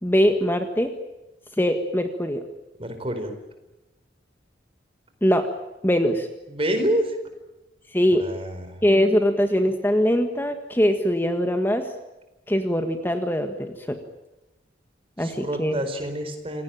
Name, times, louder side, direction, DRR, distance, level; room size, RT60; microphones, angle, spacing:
voice 1, 0.0-0.9 1.6-2.4 5.2-5.5 5.8-6.3 7.9-8.3 8.8-11.9 12.5-14.0 15.2-15.8, equal, 10° left, 6 dB, 1.6 m, -22 dB
voice 2, 2.8-3.3 6.5-7.2 8.2-8.8 15.2-16.6, right 1 dB, 35° right, 8 dB, 4.5 m, -27 dB
27.5 x 18.5 x 9.0 m, 1.0 s
head